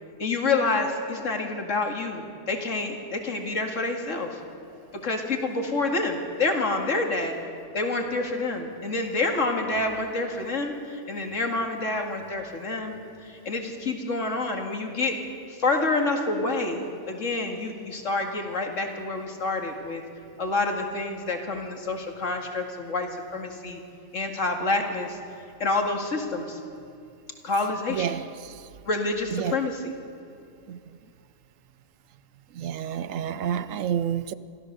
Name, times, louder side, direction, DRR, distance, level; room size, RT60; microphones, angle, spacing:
voice 1, 0.2-4.4 5.0-7.4 7.7-15.2 15.5-20.0 20.4-23.8 24.1-25.2 25.6-26.6 27.4-28.2 28.8-29.8, left 3 dB, 75° left, 2.4 m, -28 dB
voice 2, 27.9-28.7 29.3-29.6 30.7-30.8 32.5-34.3, right 9 dB, 80° right, 1.1 m, -29 dB
25.5 x 15.0 x 6.7 m
omnidirectional pair, 1.3 m